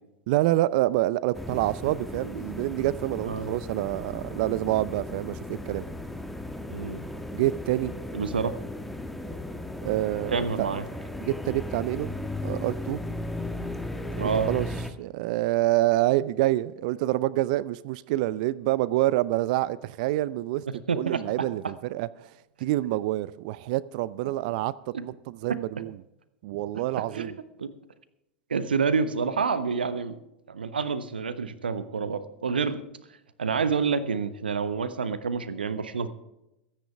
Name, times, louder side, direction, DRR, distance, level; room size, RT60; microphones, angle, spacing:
voice 1, 0.3-5.8 7.3-7.9 9.8-10.7 11.2-12.1 12.4-13.0 14.2-14.7 15.0-20.6 20.9-26.0 26.4-27.4, right 16 dB, 55° right, 19 dB, 0.6 m, -27 dB
sound 1, 1.3-14.9, left 1 dB, ahead, 1.4 m, -36 dB
voice 2, 6.7-7.0 8.1-8.5 10.3-10.8 14.2-14.5 20.9-21.2 27.1-27.3 27.6-27.7 28.5-30.2 30.5-32.8 33.4-36.1, right 5 dB, 80° right, 13 dB, 1.1 m, -28 dB
23.0 x 10.0 x 3.4 m, 0.90 s
figure-of-eight pair, 90°, 5 cm